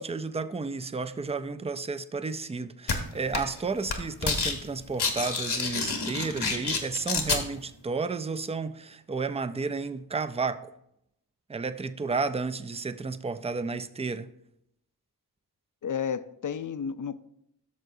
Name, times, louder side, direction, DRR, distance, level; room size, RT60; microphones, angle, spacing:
voice 1, 0.0-10.7 11.5-14.3, right 4 dB, 15° right, 0.4 m, -32 dB
sound 1, 2.9-3.0 3.3-3.6 3.9-4.5 4.8-7.4, left 4 dB, 80° left, 1.2 m, -28 dB
voice 2, 15.8-17.2, left 7 dB, 55° left, 0.5 m, -32 dB
13.5 x 6.5 x 2.7 m
wide cardioid pair, 90°, 39 cm